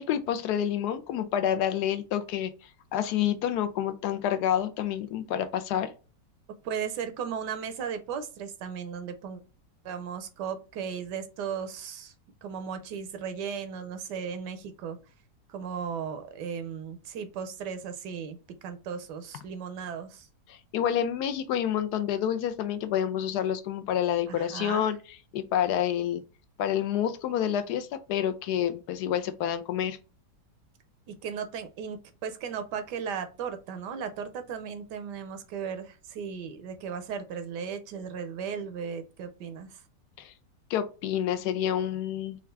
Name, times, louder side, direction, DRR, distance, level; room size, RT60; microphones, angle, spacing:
voice 1, 0.0-2.5 2.9-5.9 20.5-25.0 25.3-26.2 26.6-30.0 40.2-40.3 40.7-42.4, left 10 dB, 75° left, 1.1 m, -28 dB
voice 2, 6.6-9.4 9.8-12.1 12.4-15.0 15.5-20.3 24.3-24.9 31.1-39.8, right 7 dB, 80° right, 1.3 m, -36 dB
4.5 x 2.4 x 3.2 m
omnidirectional pair, 1.8 m